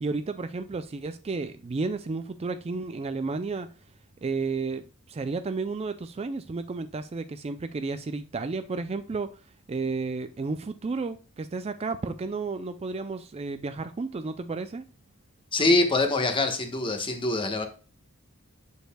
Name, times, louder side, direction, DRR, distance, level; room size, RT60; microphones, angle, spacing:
voice 1, 0.0-3.7 4.2-9.3 9.7-14.9, right 4 dB, 30° right, 0.4 m, -32 dB
voice 2, 15.5-17.7, left 2 dB, 25° left, 1.1 m, -24 dB
7.9 x 6.5 x 2.2 m
head